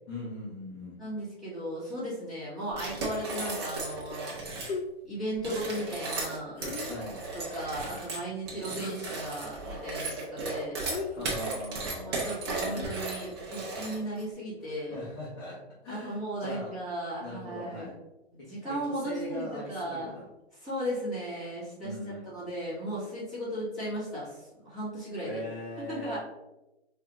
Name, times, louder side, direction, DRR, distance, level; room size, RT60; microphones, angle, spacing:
voice 1, 0.1-1.0 6.9-7.2 11.2-12.2 14.7-15.6 15.8-16.7 17.2-18.0 18.9-20.2 21.8-22.2 25.2-26.2, left 1 dB, 25° left, -8 dB, 0.6 m, -40 dB
voice 2, 1.0-4.4 5.0-6.6 7.3-10.8 12.0-15.0 15.9-17.9 18.3-20.1 20.6-21.9 22.2-25.4 25.8-26.2, right 1 dB, ahead, -14 dB, 1.3 m, -36 dB
sound 1, 2.7-4.8 5.3-14.2, right 3 dB, 25° right, 0.7 m, -36 dB
sound 2, 4.1-4.3 4.6-4.9 6.5-7.2 8.8-9.1 9.5-10.1 10.8-11.7 12.7-13.2, left 5 dB, 75° left, 0.6 m, -39 dB
4.7 x 2.4 x 2.9 m, 0.99 s
hypercardioid pair, 170°, 32 cm